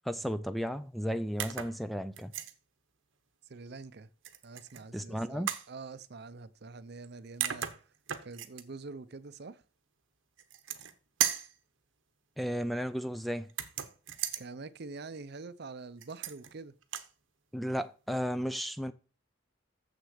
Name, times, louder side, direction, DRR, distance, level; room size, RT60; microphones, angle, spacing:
voice 1, 0.1-2.3 4.9-5.5 12.4-13.5 17.5-18.9, equal, ahead, 0.4 m, -34 dB
sound 1, 1.4-1.8 2.2-2.5 4.2-4.8 5.5-5.7 7.0-7.1 7.4-8.6 10.4-10.9 11.2-11.6 13.5-14.4 16.0-16.5 16.8-17.1, right 10 dB, 80° right, 1.0 m, -35 dB
voice 2, 3.5-4.1 4.4-7.7 8.2-9.6 14.4-16.7, right 3 dB, 55° right, 0.6 m, -45 dB
7.3 x 6.5 x 6.5 m
head